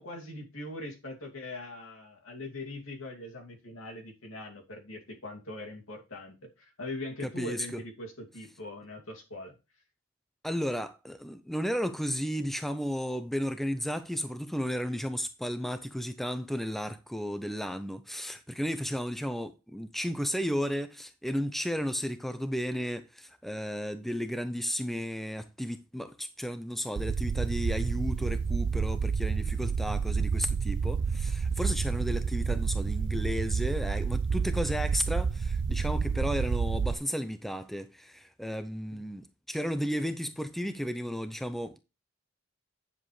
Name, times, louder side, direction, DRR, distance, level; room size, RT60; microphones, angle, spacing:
voice 1, 0.0-9.5 38.9-39.0, left 1 dB, 85° left, 2.6 m, -41 dB
voice 2, 7.2-7.8 10.4-41.8, equal, ahead, 0.5 m, -33 dB
sound 1, 27.0-37.0, right 5 dB, 60° right, 0.4 m, -29 dB
10.0 x 7.1 x 3.3 m
head